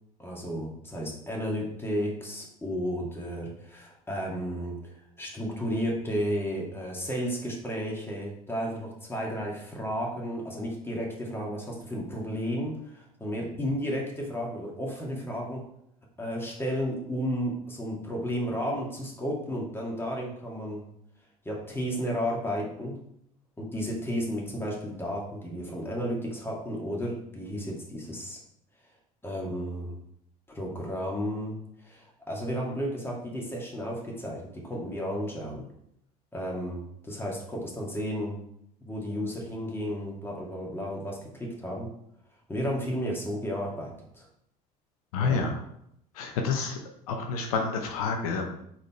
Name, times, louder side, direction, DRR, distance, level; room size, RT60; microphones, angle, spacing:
voice 1, 0.2-15.6 16.2-20.8 21.4-23.0 23.6-28.4 29.2-30.0 30.5-31.6 31.8-35.7 36.3-38.4 38.9-41.9 42.5-44.3 45.2-45.4, equal, 10° left, -2 dB, 2.3 m, -33 dB
voice 2, 45.1-45.5 46.1-46.8 47.1-48.5, left 5 dB, 85° left, 3 dB, 0.8 m, -28 dB
5.0 x 4.2 x 4.4 m, 0.74 s
hypercardioid pair, 75°, 18 cm